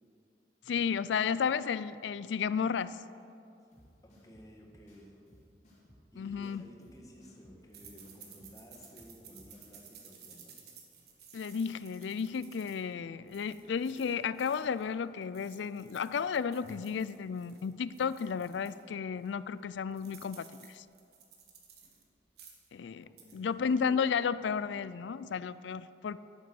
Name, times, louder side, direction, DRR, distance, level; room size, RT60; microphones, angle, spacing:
voice 1, 0.7-3.0 6.2-6.6 11.3-20.8 22.7-23.0 23.3-26.2, left 6 dB, 75° left, 16 dB, 0.4 m, -33 dB
sound 1, 3.7-9.7, equal, 40° left, 2.8 m, -60 dB
voice 2, 4.0-5.2 6.1-10.6 23.0-23.5, equal, 20° left, 0 dB, 1.5 m, -54 dB
sound 2, 7.7-14.9 15.2-18.8 19.2-19.3 19.6-22.0 22.3-22.7 23.0-23.4, right 7 dB, 60° right, 1.5 m, -56 dB
11.5 x 9.0 x 6.3 m, 2.5 s
head